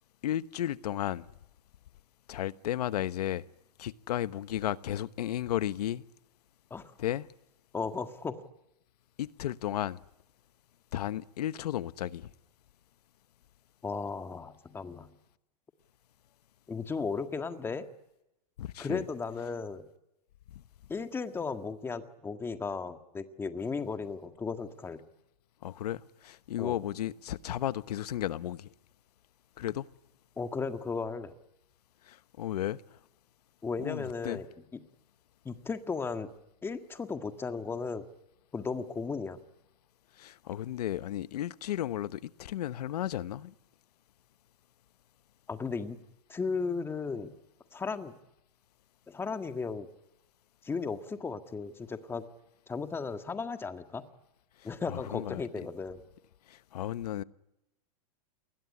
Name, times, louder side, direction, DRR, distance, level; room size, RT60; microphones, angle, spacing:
voice 1, 0.2-1.3 2.3-3.5 3.8-6.0 7.0-7.3 9.2-10.0 10.9-12.3 18.6-19.0 25.6-28.7 29.6-29.9 32.1-32.8 33.8-34.4 40.2-43.5 54.9-55.4 56.5-57.2, left 12 dB, 80° left, 1.1 m, -34 dB
voice 2, 7.7-8.4 13.8-15.1 16.7-17.9 18.8-19.9 20.9-25.0 26.6-26.8 30.4-31.3 33.6-34.5 34.7-34.8 35.4-36.3 36.6-38.1 38.5-39.4 45.5-46.0 46.3-47.3 47.7-48.2 49.1-49.9 50.6-52.2 52.7-54.0 54.6-56.0, left 4 dB, 10° left, 1.7 m, -35 dB
28.5 x 21.0 x 9.8 m
supercardioid pair, 145°, 20 cm